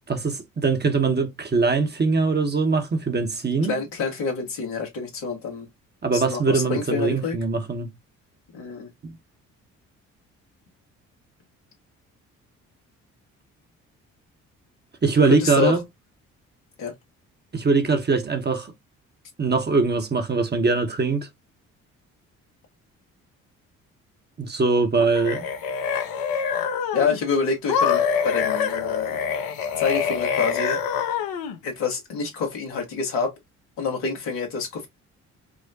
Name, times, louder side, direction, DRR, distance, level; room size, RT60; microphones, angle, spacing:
voice 1, 0.1-3.7 6.0-7.9 9.0-9.1 15.0-15.8 17.5-18.7 19.4-21.3 24.4-25.5, right 4 dB, 25° right, 0.9 m, -22 dB
voice 2, 3.7-5.7 6.1-7.4 8.5-8.9 15.2-15.8 16.8-16.9 26.9-29.2 29.8-30.8 31.6-33.3 33.8-34.9, left 5 dB, 75° left, 1.4 m, -27 dB
sound 1, 25.0-27.2 27.7-31.6, left 7 dB, 60° left, 0.8 m, -25 dB
4.8 x 2.1 x 2.7 m
hypercardioid pair, 45°, 40 cm